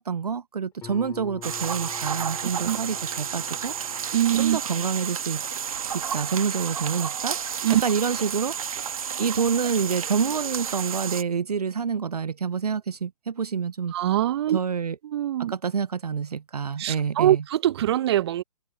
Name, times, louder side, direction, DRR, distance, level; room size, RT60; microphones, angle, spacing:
voice 1, 0.0-3.7 4.3-5.4 5.9-8.6 9.2-13.9 14.5-15.0 15.4-17.4, right 6 dB, 75° right, 0.6 m, -27 dB
Guitar, 0.8-6.2, left 9 dB, 15° left, 6.8 m, -47 dB
sound 1, 1.4-11.2, right 7 dB, 60° right, 1.5 m, -31 dB
voice 2, 4.1-4.6 7.6-7.8 13.9-14.6 15.1-15.5 16.8-18.4, right 12 dB, 40° right, 0.8 m, -23 dB
open air
figure-of-eight pair, 130°, 20 cm